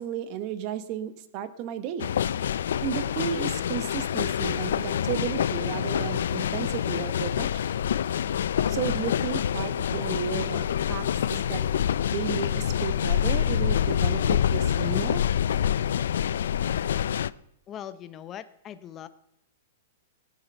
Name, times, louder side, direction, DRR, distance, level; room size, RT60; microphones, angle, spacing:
voice 1, 0.0-2.1 2.8-7.8 8.7-11.6 12.1-15.2, right 9 dB, 35° right, 12 dB, 1.1 m, -33 dB
sound 1, 2.0-17.3, left 9 dB, 75° left, 0.4 m, -26 dB
voice 2, 17.7-19.1, left 10 dB, 20° left, 12 dB, 0.7 m, -40 dB
19.0 x 8.9 x 5.5 m, 0.82 s
hypercardioid pair, 160°, 0 cm